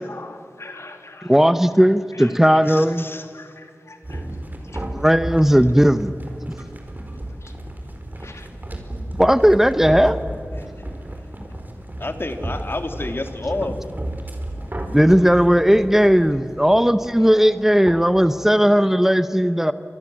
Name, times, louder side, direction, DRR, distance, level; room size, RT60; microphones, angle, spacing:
voice 1, 0.0-5.4 6.6-6.7 7.1-7.6 8.1-8.5 8.8-8.9 11.4-11.7 14.4-14.9 16.2-16.5 17.0-19.3, left 2 dB, 75° left, 2.9 m, -45 dB
voice 2, 1.3-3.0 4.9-6.1 6.5-6.6 9.2-10.2 14.9-19.7, equal, 5° right, 0.9 m, -16 dB
voice 3, 2.7-3.4 10.5-10.9 12.0-13.8, left 2 dB, 50° left, 2.6 m, -30 dB
sound 1, 4.0-18.1, right 1 dB, 40° right, 4.5 m, -33 dB
30.0 x 26.0 x 7.6 m
wide cardioid pair, 65°, 5 cm